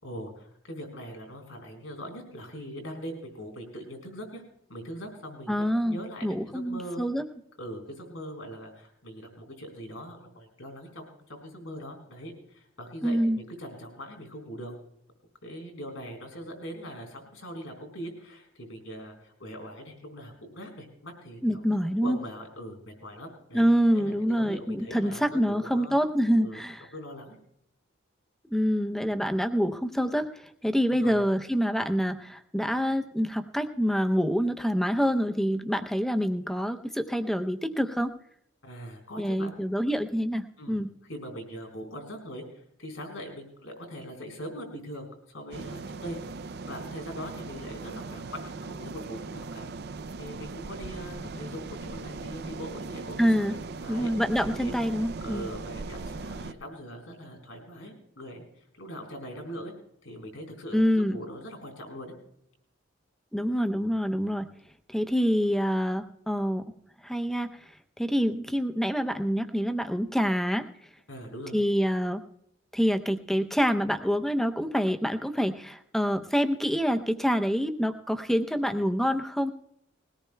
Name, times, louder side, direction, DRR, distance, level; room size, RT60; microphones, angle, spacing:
voice 1, 0.0-4.4 4.7-7.0 7.6-14.7 15.4-23.7 23.9-26.0 26.4-26.6 26.9-27.4 30.9-31.2 38.6-39.5 40.6-40.8 41.1-49.7 50.2-54.7 55.2-58.4 58.8-59.7 60.0-62.1 71.1-71.6, equal, 80° left, 4 dB, 4.1 m, -41 dB
voice 2, 5.5-7.2 13.0-13.4 21.4-22.2 23.5-26.9 28.5-38.1 39.2-40.9 53.2-53.6 53.9-55.5 60.7-61.2 63.3-64.5 64.9-66.6 67.0-67.7 68.0-70.7 71.5-72.2 72.7-79.5, equal, ahead, 8 dB, 0.6 m, -26 dB
sound 1, 45.5-56.5, right 3 dB, 55° right, 0.5 m, -39 dB
21.0 x 17.5 x 2.3 m, 0.75 s
head